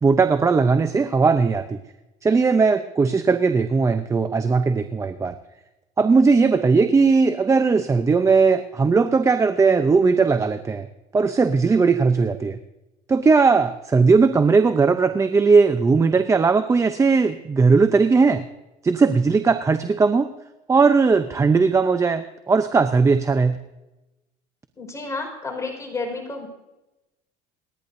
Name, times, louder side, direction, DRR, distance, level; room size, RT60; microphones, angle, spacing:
voice 1, 0.0-1.8 2.2-5.3 6.0-10.9 11.1-12.6 13.1-18.4 18.8-20.3 20.7-23.5, right 4 dB, 20° right, 9 dB, 0.8 m, -18 dB
voice 2, 24.8-26.5, left 3 dB, 20° left, 1 dB, 5.0 m, -31 dB
29.0 x 10.5 x 2.7 m, 0.99 s
supercardioid pair, 105°, 16 cm